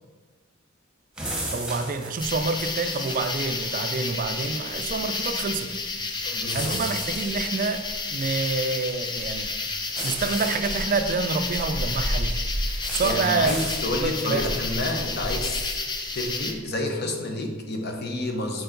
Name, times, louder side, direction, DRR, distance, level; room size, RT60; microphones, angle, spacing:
sound 1, 1.2-3.3 6.5-7.4 9.9-10.6 12.8-13.1 13.5-13.8, right 1 dB, 5° right, 1.0 m, -35 dB
voice 1, 1.5-5.7 6.2-6.3 6.5-9.5 10.0-12.4 12.9-13.5 14.0-14.5, right 4 dB, 40° right, 9 dB, 0.4 m, -27 dB
sound 2, 2.2-16.5, left 3 dB, 20° left, 0.5 m, -30 dB
voice 2, 6.2-6.8 12.7-15.6 16.1-18.6, left 1 dB, 50° left, 3 dB, 0.8 m, -29 dB
6.7 x 4.6 x 3.9 m, 1.4 s
head